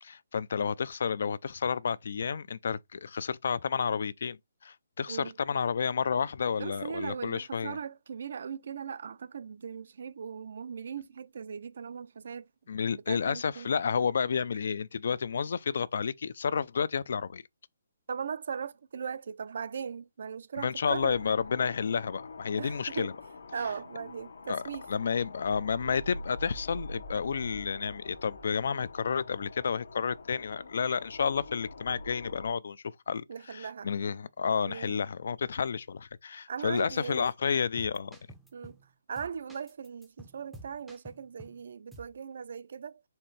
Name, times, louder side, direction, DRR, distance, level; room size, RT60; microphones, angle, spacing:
voice 1, 0.0-7.8 12.7-17.4 20.6-23.1 24.5-24.6 24.9-38.2, left 6 dB, 55° left, 0.3 m, -31 dB
voice 2, 6.6-12.5 12.9-13.7 18.1-21.2 22.6-23.1 23.5-24.8 33.3-33.9 34.7-35.0 36.5-37.3 38.5-38.8 39.1-43.0, right 6 dB, 55° right, 0.4 m, -39 dB
sound 1, 20.9-32.5, left 2 dB, 80° left, 0.8 m, -45 dB
sound 2, 36.8-37.0 37.3-37.4 37.8-38.9 39.2-41.6 41.9-42.2, right 1 dB, ahead, 0.5 m, -51 dB
4.3 x 3.3 x 3.2 m
hypercardioid pair, 170°, 0 cm